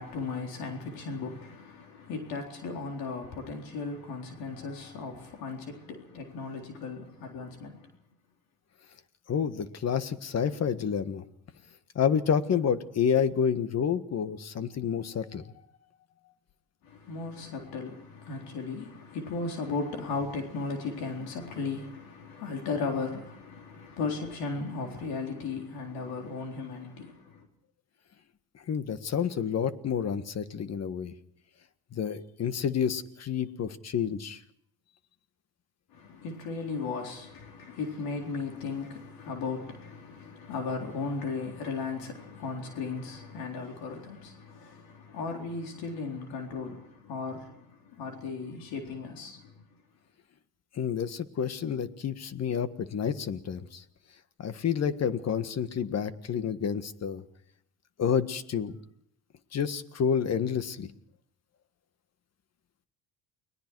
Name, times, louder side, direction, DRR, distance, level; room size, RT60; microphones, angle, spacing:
voice 1, 0.0-7.9 16.8-27.5 35.9-49.7, left 4 dB, 70° left, 4.0 m, -36 dB
voice 2, 9.3-11.2 11.9-15.5 28.5-31.1 31.9-34.4 50.7-53.8 54.4-57.2 58.0-58.8 59.5-60.9, left 7 dB, 45° left, 1.7 m, -29 dB
30.0 x 20.0 x 4.7 m
supercardioid pair, 80°, 37 cm